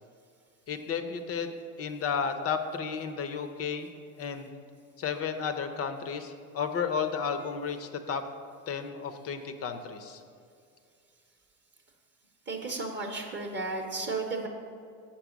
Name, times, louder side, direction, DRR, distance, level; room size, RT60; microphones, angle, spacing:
voice 1, 0.7-3.9 4.2-4.5 5.0-8.3 8.7-10.2, left 6 dB, 30° left, 8 dB, 0.7 m, -33 dB
voice 2, 12.5-14.5, right 3 dB, 25° right, 2 dB, 0.8 m, -33 dB
7.7 x 6.1 x 5.1 m, 2.4 s
supercardioid pair, 100°, 46 cm